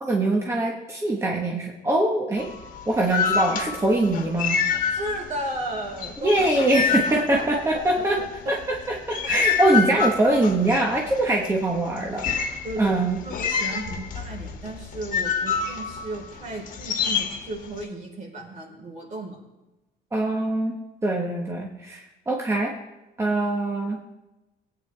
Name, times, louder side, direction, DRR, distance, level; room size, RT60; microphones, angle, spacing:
voice 1, 0.0-2.5 2.9-4.6 6.2-8.2 8.5-12.3 12.8-13.2 20.1-22.7 23.2-24.0, right 2 dB, 15° right, -1 dB, 1.3 m, -23 dB
sound 1, 2.4-5.5 5.7-8.0 8.6-17.8, left 6 dB, 50° left, 1.6 m, -27 dB
voice 2, 4.9-6.6 6.8-7.9 9.9-10.0 12.6-19.4, right 1 dB, 45° right, -1 dB, 4.2 m, -34 dB
18.0 x 9.2 x 3.4 m, 1.0 s
cardioid pair, 110°, 17 cm